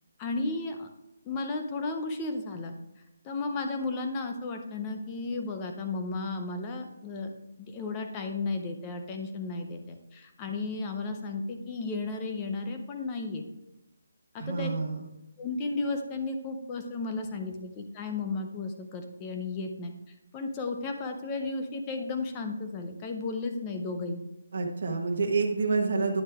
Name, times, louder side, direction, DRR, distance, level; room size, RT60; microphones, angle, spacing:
voice 1, 0.2-0.9 1.2-2.7 3.2-7.3 7.6-13.4 14.3-14.7 15.4-19.9 20.3-24.2, left 3 dB, 15° left, 4 dB, 0.6 m, -34 dB
voice 2, 14.4-15.0 24.5-26.2, right 4 dB, 40° right, 1 dB, 1.2 m, -28 dB
9.4 x 6.4 x 3.5 m, 0.92 s
hypercardioid pair, 175°, 0 cm